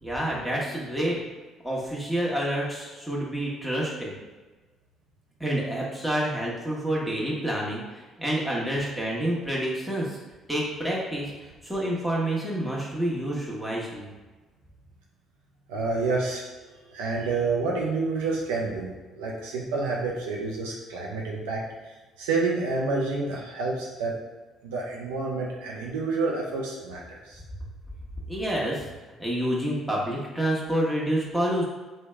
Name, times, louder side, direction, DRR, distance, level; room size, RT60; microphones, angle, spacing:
voice 1, 0.0-1.2 1.6-4.1 5.4-10.2 10.5-14.1 28.3-28.9 29.2-31.6, right 1 dB, ahead, -5 dB, 1.2 m, -28 dB
voice 2, 15.7-16.4 16.9-21.6 22.2-24.1 24.6-27.4, right 3 dB, 80° right, -3 dB, 0.5 m, -28 dB
3.3 x 2.2 x 3.3 m, 1.2 s
hypercardioid pair, 55°, 0 cm